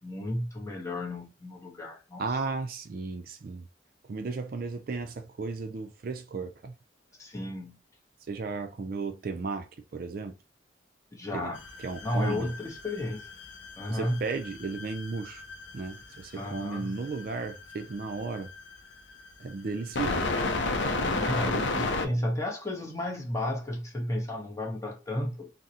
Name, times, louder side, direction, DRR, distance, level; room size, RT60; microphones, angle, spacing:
voice 1, 0.0-2.2 7.2-7.8 11.1-11.6 12.0-13.3 13.8-14.2 16.4-16.9 21.1-25.5, left 1 dB, 15° left, 0.7 m, -33 dB
voice 2, 2.2-3.7 4.1-6.7 8.3-10.4 11.3-11.5 11.8-12.5 13.9-15.4 15.7-18.5 19.4-20.3 20.9-22.2, right 4 dB, 50° right, 0.4 m, -35 dB
sound 1, 11.5-22.1, left 3 dB, 75° left, 0.5 m, -33 dB
3.7 x 2.0 x 2.7 m
head